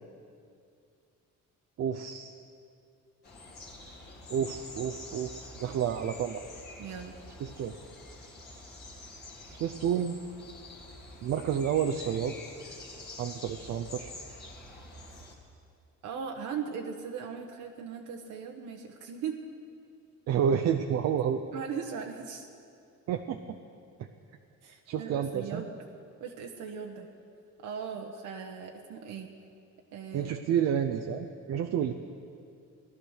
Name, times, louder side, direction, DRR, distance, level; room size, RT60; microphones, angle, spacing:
voice 1, 1.8-2.3 4.3-6.4 7.4-7.7 9.5-10.2 11.2-12.3 13.2-14.1 20.3-21.4 23.1-23.6 24.9-25.6 30.1-31.9, right 8 dB, 60° right, 6 dB, 0.7 m, -30 dB
sound 1, 3.2-15.4, left 2 dB, 35° left, 2.2 m, -47 dB
voice 2, 6.8-7.1 16.0-19.4 21.5-22.5 24.6-25.7 26.2-27.1 27.6-29.3 29.9-30.4, right 6 dB, 85° right, 1 dB, 1.2 m, -38 dB
18.0 x 12.0 x 6.5 m, 2.4 s
cardioid pair, 170°, 30 cm